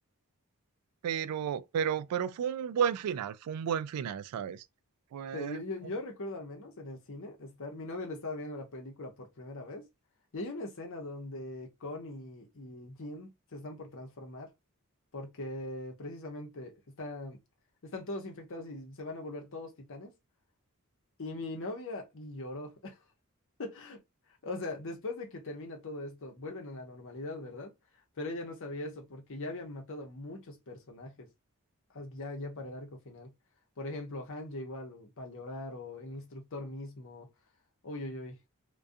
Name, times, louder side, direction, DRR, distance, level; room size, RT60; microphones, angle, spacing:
voice 1, 1.0-4.6 5.1-5.6, right 8 dB, 85° right, 0.3 m, -32 dB
voice 2, 5.3-9.9 10.3-14.5 15.1-17.4 17.8-20.1 21.2-23.0 23.6-24.0 24.4-27.7 28.2-31.3 31.9-33.3 33.8-37.3 37.8-38.5, left 2 dB, 60° left, 0.8 m, -41 dB
2.4 x 2.3 x 2.5 m
head